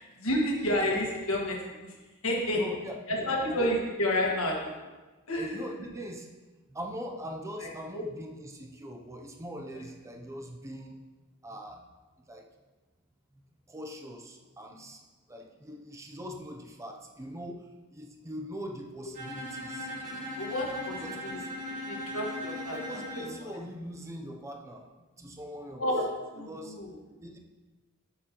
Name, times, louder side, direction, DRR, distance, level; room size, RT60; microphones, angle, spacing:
voice 1, 0.0-2.0 2.2-2.6 3.1-4.8 5.3-5.6 7.6-8.0 9.7-9.8 20.4-21.3 21.9-23.5 25.8-26.1 26.3-27.0, left 1 dB, 70° left, -2 dB, 1.6 m, -30 dB
voice 2, 2.5-3.6 5.3-6.3 6.7-10.9 11.4-11.9 12.3-12.5 13.7-15.0 15.3-17.6 17.9-19.9 21.0-21.5 22.5-24.9 25.2-25.9 26.5-26.8 27.2-27.4, equal, 15° right, 2 dB, 0.6 m, -42 dB
Bowed string instrument, 19.1-23.4, left 1 dB, 35° right, 1.6 m, -38 dB
8.1 x 7.4 x 3.0 m, 1.2 s
head